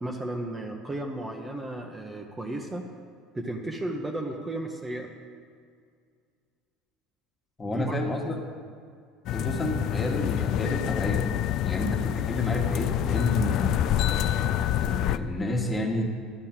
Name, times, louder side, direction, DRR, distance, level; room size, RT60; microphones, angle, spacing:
voice 1, 0.0-2.8 3.3-5.1 7.6-8.0, right 1 dB, 15° right, 1 dB, 1.0 m, -34 dB
voice 2, 7.6-8.4 9.3-11.2 11.6-14.1 14.8-16.0, left 1 dB, 20° left, 1 dB, 1.7 m, -30 dB
sound 1, 9.3-15.2, left 11 dB, 60° left, 0.4 m, -27 dB
11.0 x 6.6 x 7.4 m, 2.2 s
supercardioid pair, 110°, 0 cm